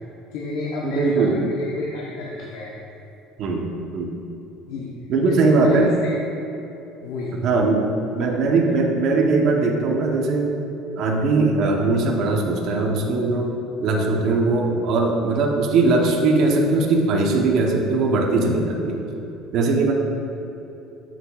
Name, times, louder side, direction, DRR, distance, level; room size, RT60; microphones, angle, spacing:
voice 1, 0.3-2.7 4.7-5.9 7.0-7.4, left 3 dB, 75° left, -3 dB, 0.7 m, -31 dB
voice 2, 0.8-1.4 3.4-4.1 5.1-5.9 7.4-10.5 11.0-19.0 19.5-19.9, right 3 dB, 55° right, 1 dB, 0.8 m, -20 dB
8.2 x 5.8 x 2.3 m, 2.8 s
cardioid pair, 135°, 0 cm